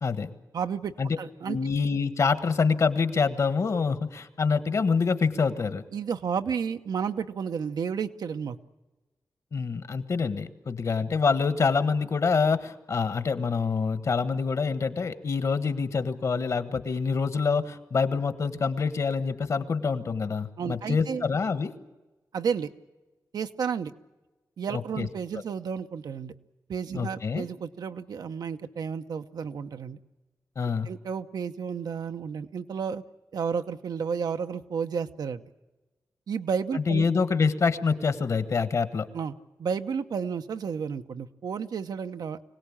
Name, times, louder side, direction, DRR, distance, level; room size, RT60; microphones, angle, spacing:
voice 1, 0.5-1.6 5.9-8.6 20.6-21.2 22.3-22.7 23.3-23.9 24.6-26.3 26.7-30.0 30.8-33.0 33.3-35.4 36.3-37.1 39.1-39.3 39.6-42.4, right 6 dB, 80° right, 9 dB, 0.9 m, -32 dB
voice 2, 1.5-5.8 9.5-21.7 24.7-25.1 26.9-27.5 30.6-30.9 36.7-39.1, left 5 dB, 50° left, 11 dB, 1.4 m, -26 dB
25.0 x 18.0 x 8.7 m, 1.1 s
wide cardioid pair, 155°, 7 cm